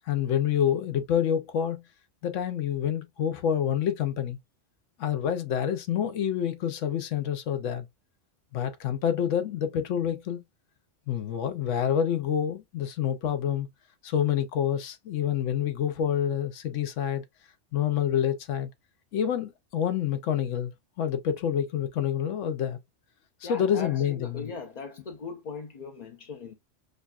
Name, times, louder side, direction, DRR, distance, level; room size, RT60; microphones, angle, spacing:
voice 1, 0.1-1.8 2.2-4.4 5.0-7.9 8.5-10.4 11.1-13.7 14.0-17.2 17.7-18.7 19.1-20.7 21.0-22.8 23.4-24.5, left 9 dB, 80° left, 1.0 m, -27 dB
voice 2, 23.4-26.5, left 5 dB, 50° left, 0.5 m, -39 dB
6.4 x 2.3 x 2.3 m
omnidirectional pair, 1.3 m